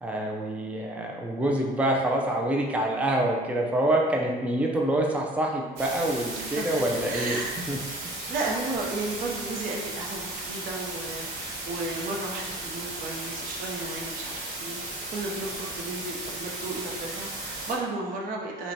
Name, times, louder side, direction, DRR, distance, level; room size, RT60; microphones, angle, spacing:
voice 1, 0.0-7.4 7.7-7.8 8.0-8.2, right 1 dB, 10° right, 0 dB, 0.4 m, -26 dB
sound 1, 5.8-17.7, right 2 dB, 80° right, 1.0 m, -36 dB
voice 2, 7.1-7.6 8.3-14.8 15.1-18.7, right 2 dB, 55° right, -1 dB, 0.7 m, -34 dB
5.5 x 2.2 x 2.7 m, 1.3 s
cardioid pair, 110°, 17 cm